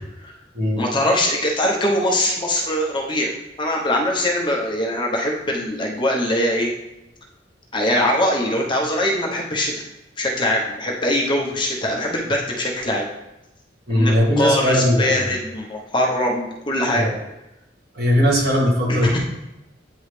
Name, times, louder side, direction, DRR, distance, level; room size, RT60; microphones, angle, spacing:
voice 1, 0.8-3.3 3.6-6.7 7.7-9.8 10.2-13.0 13.9-17.0 18.9-19.2, left 1 dB, 25° left, -1 dB, 0.9 m, -22 dB
voice 2, 13.9-15.3 16.9-17.2 17.9-19.2, equal, 60° right, -3 dB, 1.7 m, -19 dB
9.1 x 3.1 x 3.3 m, 0.92 s
head